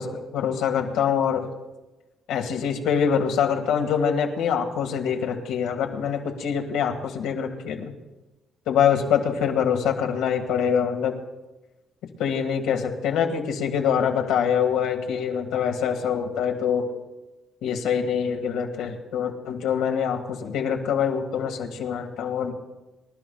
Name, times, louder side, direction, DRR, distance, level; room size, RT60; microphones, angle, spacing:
voice 1, 0.0-1.5 2.3-7.9 8.7-11.2 12.2-16.9 17.6-22.5, left 7 dB, 85° left, 4 dB, 1.8 m, -24 dB
25.0 x 13.0 x 2.3 m, 1.1 s
cardioid pair, 145°, 0 cm